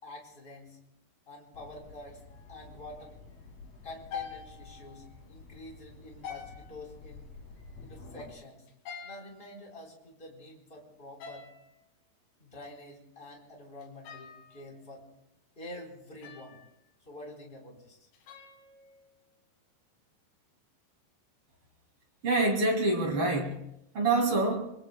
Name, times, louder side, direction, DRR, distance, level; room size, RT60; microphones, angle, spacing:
voice 1, 0.0-0.8 1.3-2.2 2.5-3.2 3.8-7.3 7.8-8.6 9.0-11.5 12.4-15.0 15.5-16.6 17.0-18.1, left 1 dB, 15° left, -1 dB, 3.3 m, -47 dB
sound 1, 1.5-8.3, left 3 dB, 45° left, 3.0 m, -51 dB
sound 2, 2.3-2.7 3.0-3.1 4.1-5.2 6.2-7.1 8.7-10.1 11.2-11.8 13.8-15.0 16.2-16.9 18.1-19.4, left 7 dB, 70° left, 3.7 m, -46 dB
voice 2, 22.2-24.7, right 2 dB, 40° right, 1 dB, 2.2 m, -27 dB
25.5 x 24.0 x 2.2 m, 0.83 s
omnidirectional pair, 5.0 m